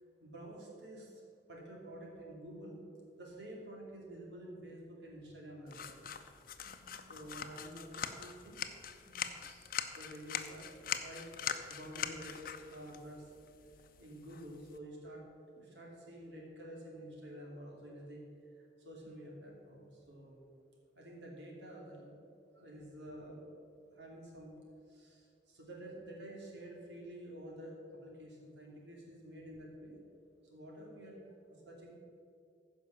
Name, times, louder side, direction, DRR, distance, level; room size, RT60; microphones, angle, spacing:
voice 1, 0.2-1.2 1.5-2.8 3.2-6.0 7.1-8.6 10.0-11.3 11.7-12.4 12.7-13.3 14.0-15.2 15.5-20.5 20.9-22.2 22.5-23.4 23.9-24.5 24.9-30.0 30.4-31.2 31.5-31.9, right 1 dB, 80° right, -2 dB, 2.7 m, -50 dB
sound 1, 5.7-14.8, left 8 dB, 50° left, 0.7 m, -43 dB
voice 2, 6.6-7.2 9.0-9.7 19.1-19.3 23.7-24.0 28.8-29.0 31.0-31.3, equal, 40° right, -3 dB, 2.1 m, -63 dB
15.0 x 5.4 x 7.1 m, 2.5 s
head